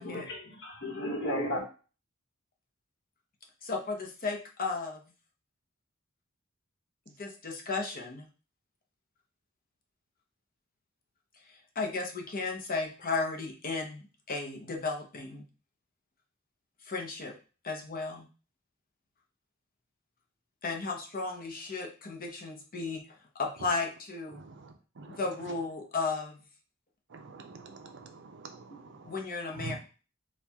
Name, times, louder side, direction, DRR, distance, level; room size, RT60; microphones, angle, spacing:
voice 1, 0.0-1.6 28.7-28.9 29.7-29.8, equal, 60° left, -1 dB, 1.3 m, -34 dB
voice 2, 3.6-5.0 7.1-8.3 11.4-15.4 16.8-17.3 17.6-18.3 20.6-24.4 25.1-26.4 29.0-29.8, left 3 dB, 45° left, 2 dB, 0.8 m, -35 dB
voice 3, 24.3-25.2 27.1-29.2 29.5-29.8, right 3 dB, 60° right, 5 dB, 0.6 m, -46 dB
4.3 x 2.4 x 3.5 m, 0.35 s
head